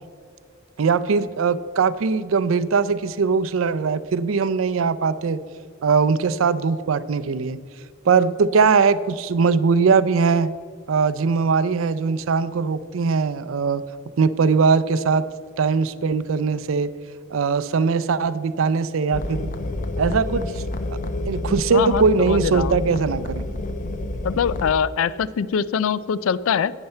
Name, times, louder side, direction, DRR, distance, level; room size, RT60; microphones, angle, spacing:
voice 1, 0.8-5.4 5.8-7.6 8.1-10.5 10.9-13.8 14.2-15.2 15.6-16.9 17.3-19.5 20.0-20.6 21.3-23.4, right 5 dB, 75° right, 15 dB, 0.4 m, -20 dB
sound 1, 19.1-24.7, left 1 dB, 40° left, 0.6 m, -29 dB
voice 2, 21.7-22.8 24.2-26.7, left 7 dB, 90° left, 18 dB, 0.4 m, -23 dB
11.0 x 9.0 x 4.4 m, 2.2 s
head